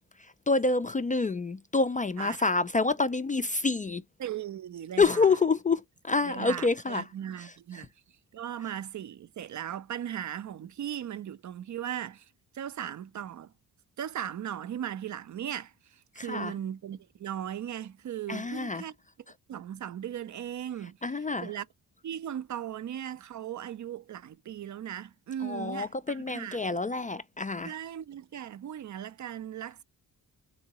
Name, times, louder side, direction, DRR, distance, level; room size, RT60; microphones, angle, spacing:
voice 1, 0.2-4.0 5.0-7.0 7.4-7.9 16.2-16.5 18.3-18.9 21.0-21.5 25.4-27.7, left 4 dB, 20° left, 0.3 m, -28 dB
voice 2, 4.2-5.3 6.3-7.9 8.3-12.3 12.5-13.5 14.0-18.9 19.5-21.0 21.4-21.6 22.0-26.8 27.6-29.8, right 10 dB, 50° right, 0.5 m, -38 dB
3.7 x 2.5 x 2.9 m
supercardioid pair, 55°, 40 cm